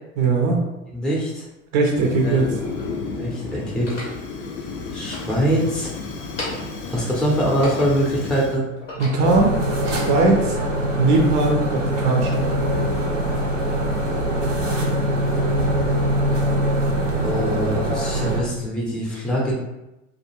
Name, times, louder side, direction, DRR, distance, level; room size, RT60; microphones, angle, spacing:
voice 1, 0.2-0.6 1.7-2.5 9.0-9.6 9.8-10.6 11.0-12.5, right 3 dB, 40° right, 1 dB, 0.5 m, -19 dB
voice 2, 0.9-1.5 2.2-2.4 3.2-3.9 4.9-5.9 6.9-8.7 17.2-19.5, equal, ahead, -4 dB, 0.7 m, -23 dB
sound 1, 1.2-1.3 2.1-3.0 3.7-4.2 4.9-5.9 6.2-6.8 7.3-8.2 8.7-9.4, left 2 dB, 80° left, 0.9 m, -34 dB
Fire, 1.9-8.6, left 4 dB, 50° left, 0.5 m, -32 dB
sound 2, 9.2-18.4, right 1 dB, 85° right, 0.6 m, -22 dB
2.4 x 2.2 x 3.0 m, 0.95 s
figure-of-eight pair, 70°, 37 cm